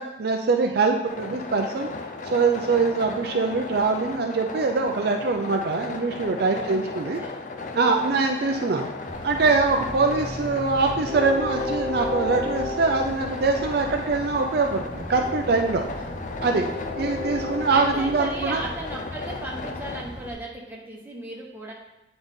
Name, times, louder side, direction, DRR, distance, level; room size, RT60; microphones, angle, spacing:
voice 1, 0.0-1.9 2.2-7.2 7.7-8.9 9.2-15.9 16.4-16.7 17.0-18.6, right 4 dB, 55° right, 2 dB, 0.4 m, -23 dB
sound 1, 1.0-20.0, left 3 dB, 40° left, 0.5 m, -36 dB
voice 2, 6.5-6.9 7.2-7.4 16.4-17.0 17.7-21.7, right 2 dB, 10° right, -3 dB, 1.1 m, -36 dB
Train, 9.1-20.3, left 1 dB, 25° left, 1.3 m, -34 dB
8.7 x 3.9 x 3.6 m, 0.91 s
head